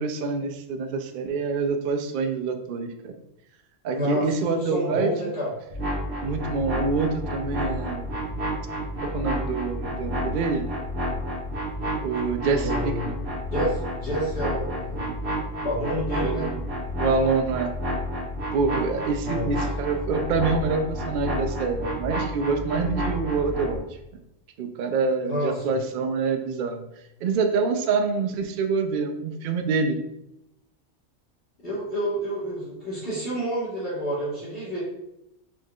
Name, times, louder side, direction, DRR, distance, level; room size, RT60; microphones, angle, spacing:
voice 1, 0.0-3.2 3.8-5.3 6.2-8.4 9.0-10.6 12.0-13.2 15.0-15.1 16.2-16.6 17.0-17.7 18.5-23.9 24.6-26.8 27.2-30.0, right 4 dB, 65° right, 6 dB, 0.5 m, -26 dB
voice 2, 3.9-5.5 12.5-13.1 13.5-15.1 15.6-16.5 19.2-19.5 25.3-25.7 31.6-34.8, equal, 45° left, -10 dB, 1.7 m, -29 dB
sound 1, 5.7-23.8, equal, 45° right, 1.4 m, -30 dB
4.5 x 4.5 x 2.3 m, 0.84 s
omnidirectional pair, 1.4 m